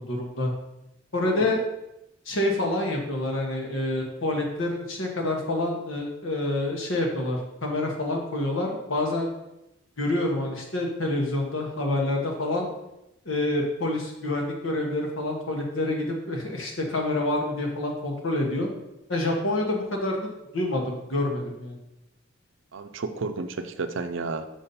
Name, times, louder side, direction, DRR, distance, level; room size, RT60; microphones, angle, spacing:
voice 1, 0.1-0.5 1.1-1.6 2.2-9.3 10.0-12.7 13.2-18.7 19.1-21.7, left 1 dB, 75° left, 1 dB, 1.4 m, -27 dB
voice 2, 1.2-1.6 22.7-24.5, right 3 dB, 65° right, 9 dB, 0.5 m, -32 dB
6.0 x 4.2 x 5.5 m, 0.89 s
head